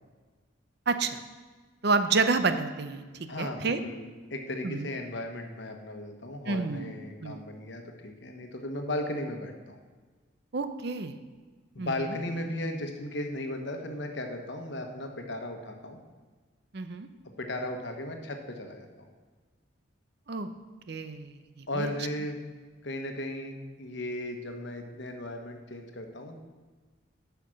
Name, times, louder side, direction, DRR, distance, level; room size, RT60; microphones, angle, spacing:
voice 1, 0.9-1.2 1.8-3.8 4.6-4.9 6.5-6.9 7.2-7.4 10.5-11.2 11.8-12.2 16.7-17.1 20.3-20.5 20.9-21.9, right 4 dB, 55° right, 10 dB, 0.6 m, -29 dB
voice 2, 3.3-4.0 4.3-9.8 11.7-16.0 17.4-19.1 21.7-22.4 22.8-26.4, left 1 dB, 60° left, 4 dB, 1.1 m, -36 dB
8.6 x 5.8 x 6.3 m, 1.4 s
head